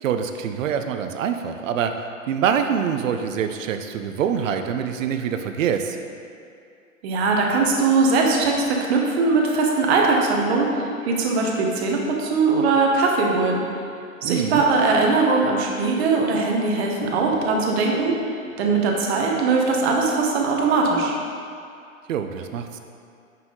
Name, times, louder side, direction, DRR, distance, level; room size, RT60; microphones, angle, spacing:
voice 1, 0.0-1.9 2.3-6.0 14.2-14.6 22.1-22.8, right 8 dB, 65° right, 7 dB, 0.7 m, -25 dB
voice 2, 7.0-13.6 14.2-18.2 18.6-21.2, right 3 dB, 50° right, 0 dB, 1.2 m, -20 dB
5.8 x 5.7 x 3.8 m, 2.4 s
hypercardioid pair, 115°, 42 cm